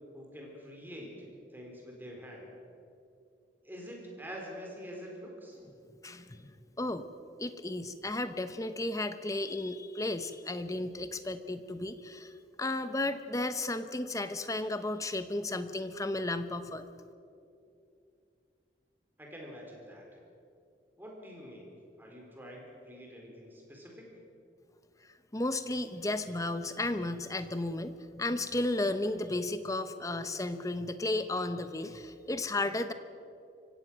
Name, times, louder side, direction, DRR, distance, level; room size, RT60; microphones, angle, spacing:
voice 1, 0.1-1.1 1.5-2.5 3.6-5.6 19.2-20.0 21.0-21.7 22.0-24.0, equal, 10° right, -1 dB, 4.4 m, -46 dB
voice 2, 6.0-6.4 6.8-7.1 7.4-12.3 12.6-16.8 25.3-32.9, left 2 dB, 20° left, 10 dB, 0.9 m, -33 dB
25.0 x 16.5 x 6.4 m, 2.6 s
head